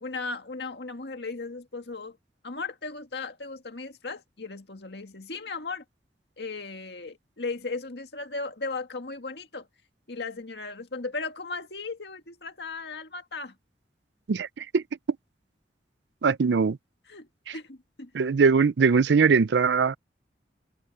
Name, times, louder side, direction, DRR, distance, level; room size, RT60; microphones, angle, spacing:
voice 1, 0.0-2.2 2.4-5.8 6.4-9.7 10.1-13.6 17.1-18.1, left 3 dB, 65° left, 2.0 m, -36 dB
voice 2, 14.3-14.8 16.2-16.8 17.5-17.6 18.1-20.0, right 5 dB, 75° right, 0.5 m, -21 dB
head